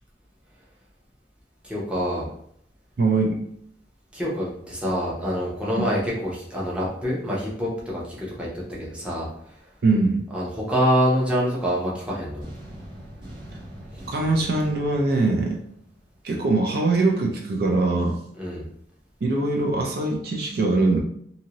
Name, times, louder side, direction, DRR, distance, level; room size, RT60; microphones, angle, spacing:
voice 1, 1.6-2.3 4.1-8.5 8.8-9.3 10.3-12.5 13.9-14.0 18.4-18.6, equal, 5° right, -6 dB, 0.7 m, -26 dB
voice 2, 3.0-3.4 5.8-5.9 9.8-10.2 14.1-15.6 16.2-18.2 19.2-21.0, right 3 dB, 55° right, 0 dB, 0.4 m, -22 dB
sound 1, 12.4-16.4, equal, 30° right, 1.1 m, -42 dB
2.7 x 2.7 x 2.9 m, 0.68 s
head